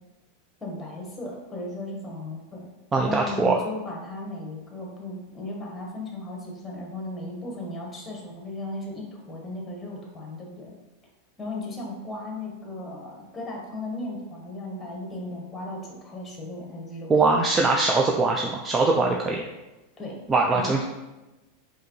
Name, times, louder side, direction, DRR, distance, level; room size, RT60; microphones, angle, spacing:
voice 1, 0.6-2.7 3.0-10.7 11.4-17.1 20.0-20.2 20.5-20.8, left 2 dB, 10° left, -1 dB, 1.1 m, -36 dB
voice 2, 2.9-3.6 17.1-19.5 20.3-20.8, right 3 dB, 15° right, 0 dB, 0.3 m, -22 dB
4.7 x 2.7 x 3.1 m, 1.0 s
supercardioid pair, 150°, 0 cm